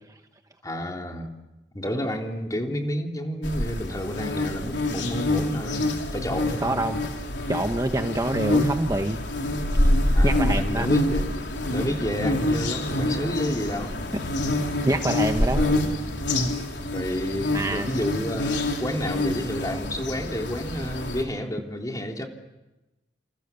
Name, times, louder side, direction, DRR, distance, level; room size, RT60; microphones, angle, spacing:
voice 1, 0.6-1.3 1.7-5.8 6.1-6.8 10.1-11.4 11.7-13.9 15.6-16.0 16.9-22.3, equal, 20° left, 2 dB, 3.3 m, -30 dB
sound 1, 3.4-21.2, left 1 dB, 75° left, 4.1 m, -26 dB
voice 2, 6.6-7.1 7.5-9.2 10.2-10.9 14.8-15.6 17.5-17.9, right 1 dB, 20° right, 6 dB, 1.2 m, -26 dB
29.0 x 28.5 x 7.1 m, 1.0 s
head